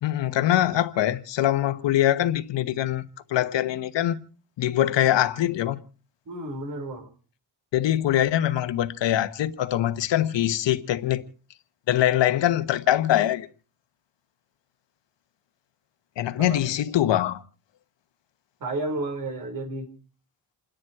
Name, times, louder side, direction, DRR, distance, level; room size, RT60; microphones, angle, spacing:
voice 1, 0.0-3.0 3.3-4.2 4.6-5.8 7.7-11.2 11.9-13.5 16.2-17.4, left 12 dB, 70° left, 1.2 m, -23 dB
voice 2, 6.3-7.1 16.4-16.6 18.6-19.9, right 2 dB, 45° right, 4.9 m, -32 dB
29.0 x 10.5 x 4.7 m
wide cardioid pair, 175°, 45 cm